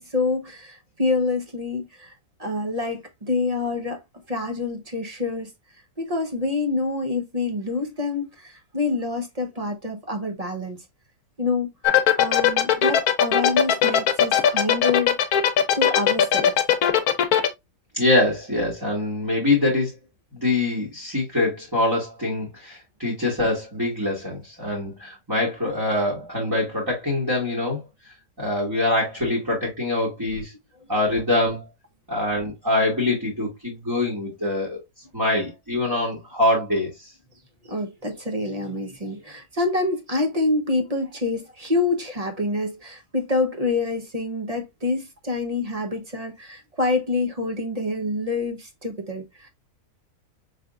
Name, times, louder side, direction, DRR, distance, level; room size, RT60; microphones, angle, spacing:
voice 1, 0.0-4.0 4.3-5.5 6.0-10.8 11.4-11.7 12.2-15.2 15.7-16.5 30.8-30.9 37.6-49.5, left 3 dB, 30° right, 0.8 m, -27 dB
sound 1, 11.8-17.5, left 9 dB, 70° left, 1.2 m, -18 dB
voice 2, 17.9-19.9 20.3-27.8 28.4-30.5 30.9-31.7 32.1-34.8 35.1-36.9, left 2 dB, 15° right, 1.8 m, -24 dB
5.3 x 3.3 x 2.4 m
omnidirectional pair, 1.7 m